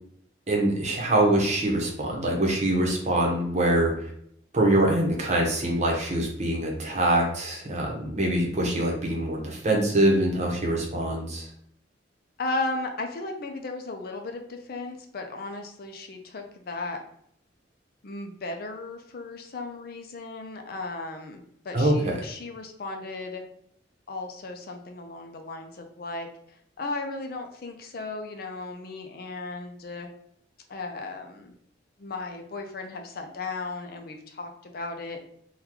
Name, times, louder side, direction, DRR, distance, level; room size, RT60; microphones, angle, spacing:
voice 1, 0.5-3.9 4.5-11.5 21.7-22.1, right 1 dB, 40° right, 0 dB, 0.8 m, -24 dB
voice 2, 12.4-17.0 18.0-23.4 24.1-30.1 30.7-31.5 32.0-35.2, left 3 dB, 55° left, 4 dB, 0.5 m, -35 dB
3.7 x 2.3 x 2.9 m, 0.69 s
head